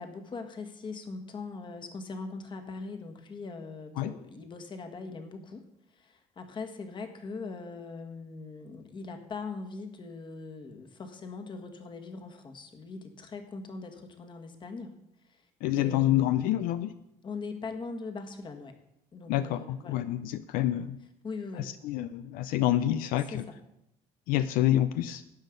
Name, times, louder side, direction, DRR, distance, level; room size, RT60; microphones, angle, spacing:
voice 1, 0.0-5.6 6.0-15.0 15.3-15.4 15.7-16.5 17.2-18.7 19.1-20.0 21.2-21.7 23.3-23.4, left 4 dB, 35° left, 5 dB, 1.6 m, -41 dB
voice 2, 15.6-16.9 19.3-21.0 21.6-23.5 24.3-25.2, left 13 dB, 80° left, 12 dB, 0.5 m, -27 dB
12.0 x 8.3 x 5.2 m, 0.82 s
cardioid pair, 125°, 14 cm